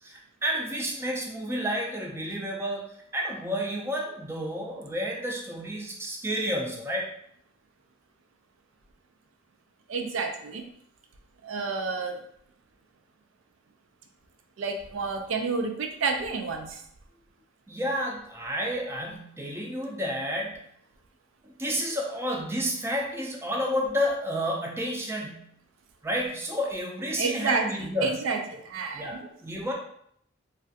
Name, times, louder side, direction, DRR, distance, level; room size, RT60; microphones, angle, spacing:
voice 1, 0.0-7.1 17.7-20.6 21.6-25.5 26.0-28.2 28.9-29.7, equal, 10° right, -1 dB, 0.4 m, -30 dB
voice 2, 9.9-10.6 11.4-12.2 14.6-16.8 27.2-27.7 28.0-29.2, right 4 dB, 80° right, 4 dB, 0.4 m, -30 dB
3.2 x 2.4 x 2.7 m, 0.69 s
head